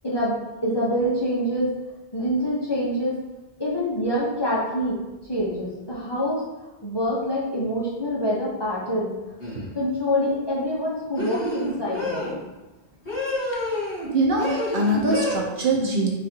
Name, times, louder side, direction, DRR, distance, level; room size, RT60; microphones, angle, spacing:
voice 1, 0.0-1.7 2.1-3.2 3.6-5.0 5.3-6.4 6.8-9.1 9.7-12.3, equal, 25° left, -7 dB, 0.7 m, -25 dB
sound 1, 9.4-9.7 11.2-12.3 13.1-14.1 14.4-15.4, left 1 dB, 80° left, 1.8 m, -28 dB
voice 2, 14.1-16.1, right 1 dB, 55° right, -1 dB, 0.7 m, -22 dB
4.0 x 2.5 x 4.3 m, 1.1 s
omnidirectional pair, 1.1 m